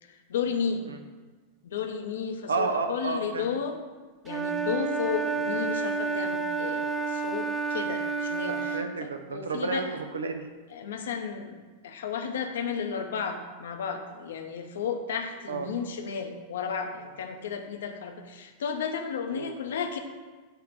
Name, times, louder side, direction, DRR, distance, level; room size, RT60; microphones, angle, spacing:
voice 1, 0.0-0.8 1.6-3.8 4.2-8.8 9.3-9.9 10.7-20.0, left 6 dB, 60° left, 6 dB, 0.9 m, -33 dB
voice 2, 2.5-3.5 8.5-10.5 15.5-15.7 19.3-19.5, right 4 dB, 70° right, 6 dB, 0.8 m, -31 dB
Wind instrument woodwind instrument, 4.3-8.9, right 4 dB, 20° right, 0.6 m, -30 dB
9.1 x 3.4 x 6.7 m, 1.3 s
figure-of-eight pair, 90°, 0 cm